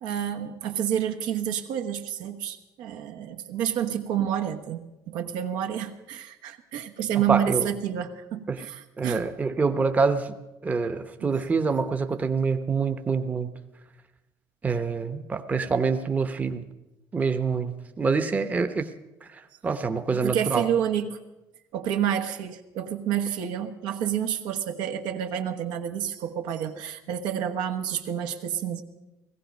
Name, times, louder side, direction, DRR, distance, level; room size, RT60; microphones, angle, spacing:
voice 1, 0.0-9.2 11.2-11.3 20.1-21.2 21.7-28.8, right 9 dB, 90° right, 5 dB, 1.3 m, -29 dB
voice 2, 7.3-7.7 8.5-8.6 9.0-10.3 10.6-13.5 14.6-16.6 17.1-18.9 19.3-20.7, right 4 dB, 20° right, 8 dB, 0.8 m, -26 dB
18.0 x 15.5 x 5.2 m, 1.0 s
cardioid pair, 135°, 8 cm